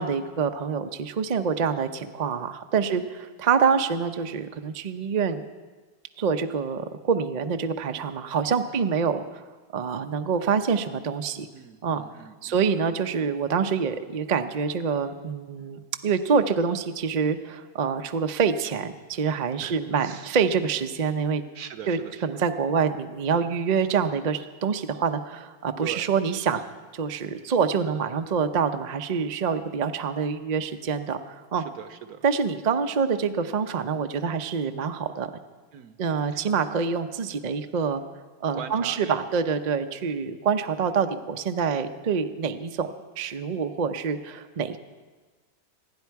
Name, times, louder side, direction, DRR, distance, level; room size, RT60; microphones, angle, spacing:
voice 1, 0.0-5.4 6.2-9.2 9.7-11.5 11.8-12.0 12.4-21.4 21.9-26.7 26.9-31.6 32.2-35.3 36.0-38.0 38.4-42.9 43.2-44.8, right 6 dB, 45° right, 8 dB, 0.6 m, -26 dB
voice 2, 11.5-12.7 19.6-20.3 21.2-21.3 21.5-22.3 25.8-26.1 31.6-32.3 35.7-36.0 36.3-36.4 38.5-39.2, right 8 dB, 75° right, 10 dB, 1.4 m, -41 dB
26.0 x 10.5 x 4.7 m, 1.3 s
omnidirectional pair, 1.6 m